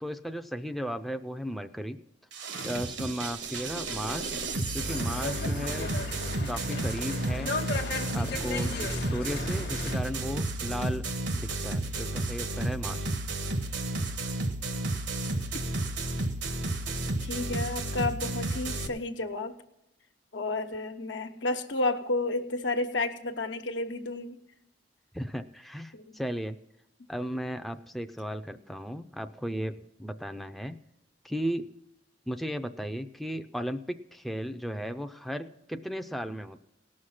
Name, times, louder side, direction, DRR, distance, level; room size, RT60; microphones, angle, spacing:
voice 1, 0.0-2.0 2.6-4.3 4.7-5.9 6.5-7.6 8.1-11.1 11.3-13.2 25.1-26.6 27.1-30.8 31.2-31.7 32.3-36.6, equal, ahead, 6 dB, 0.4 m, -35 dB
sound 1, 2.3-18.9, right 2 dB, 80° right, 1.2 m, -32 dB
sound 2, 4.9-10.0, left 3 dB, 60° left, 1.0 m, -36 dB
voice 2, 17.2-19.6 20.3-24.4 25.9-26.2, left 2 dB, 90° left, 5 dB, 1.1 m, -31 dB
18.0 x 6.4 x 5.8 m, 0.86 s
head